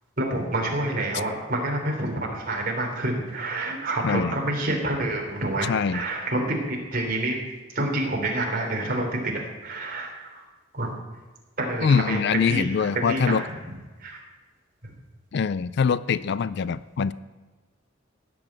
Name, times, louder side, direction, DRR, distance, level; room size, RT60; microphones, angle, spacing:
voice 1, 0.2-7.4 7.7-10.4 10.7-10.9 11.6-13.5 14.0-14.2 14.8-14.9, right 1 dB, 45° right, 0 dB, 3.3 m, -28 dB
voice 2, 4.0-4.3 5.7-6.0 11.8-13.4 15.3-17.1, left 6 dB, 55° left, 17 dB, 0.4 m, -23 dB
16.5 x 6.3 x 8.7 m, 1.3 s
head